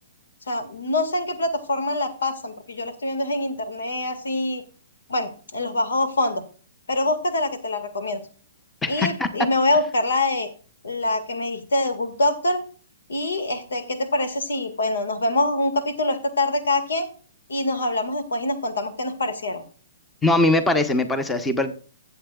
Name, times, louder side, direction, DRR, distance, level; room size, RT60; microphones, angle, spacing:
voice 1, 0.5-4.6 5.1-6.4 6.9-8.2 8.9-10.5 10.8-12.6 13.1-17.1 17.5-19.6, left 2 dB, 85° left, 8 dB, 1.9 m, -25 dB
voice 2, 8.8-9.3 20.2-21.7, left 2 dB, 10° left, 10 dB, 0.9 m, -21 dB
15.5 x 7.9 x 2.4 m, 0.40 s
hypercardioid pair, 145°, 0 cm